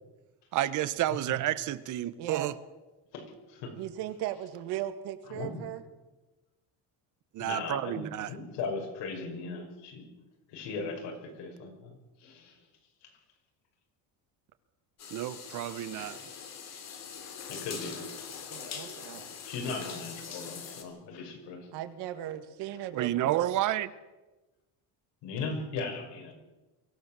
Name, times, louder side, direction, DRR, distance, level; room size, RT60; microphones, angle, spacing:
voice 1, 0.5-2.6 7.3-8.3 15.1-16.2 22.9-23.9, right 13 dB, 45° right, 16 dB, 0.9 m, -30 dB
voice 2, 2.2-2.5 3.8-5.8 18.5-19.3 21.7-23.5, right 12 dB, 70° right, 9 dB, 1.9 m, -37 dB
voice 3, 3.1-3.7 5.3-5.6 7.4-10.1 10.5-12.6 13.0-13.1 17.5-18.1 19.4-21.7 25.2-26.3, left 4 dB, 90° left, 3 dB, 5.9 m, -38 dB
sound 1, 15.0-20.8, left 7 dB, 40° left, 2.8 m, -43 dB
24.0 x 15.5 x 7.4 m, 1.1 s
cardioid pair, 180°, 41 cm